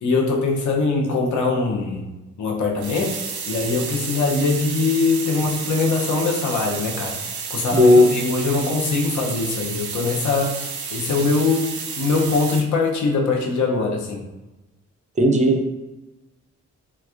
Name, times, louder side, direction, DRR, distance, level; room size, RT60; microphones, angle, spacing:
voice 1, 0.0-2.1 2.4-3.2 3.5-7.2 7.5-10.6 10.9-14.2, left 3 dB, 80° left, 0 dB, 0.7 m, -22 dB
sound 1, 2.8-12.6, right 5 dB, 85° right, 0.5 m, -31 dB
voice 2, 7.7-8.1 15.2-15.7, left 1 dB, 25° right, 3 dB, 0.4 m, -14 dB
3.3 x 3.1 x 2.4 m, 1.1 s
wide cardioid pair, 155°, 29 cm